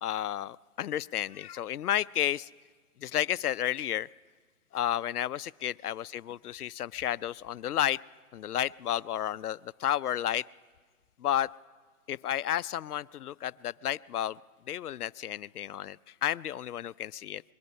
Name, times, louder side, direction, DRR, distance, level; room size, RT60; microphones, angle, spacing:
voice 1, 0.0-2.5 3.0-4.1 4.7-8.0 8.3-10.4 11.2-11.5 12.1-14.4 14.7-17.4, left 11 dB, 85° left, 18 dB, 0.6 m, -32 dB
22.0 x 21.5 x 5.5 m, 1.5 s
hypercardioid pair, 160°, 44 cm